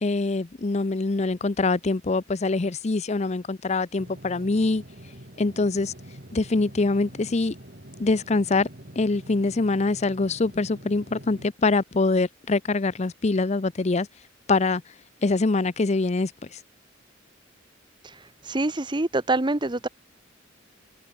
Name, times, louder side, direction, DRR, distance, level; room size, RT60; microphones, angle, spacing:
voice 1, 0.0-4.8 5.4-5.9 6.3-7.5 8.0-8.7 9.0-14.1 14.5-14.8 15.2-16.6, left 3 dB, 35° left, 0.6 m, -24 dB
sound 1, 4.0-11.5, right 1 dB, 50° right, 4.7 m, -45 dB
voice 2, 18.0-19.9, right 2 dB, 25° right, 1.0 m, -26 dB
head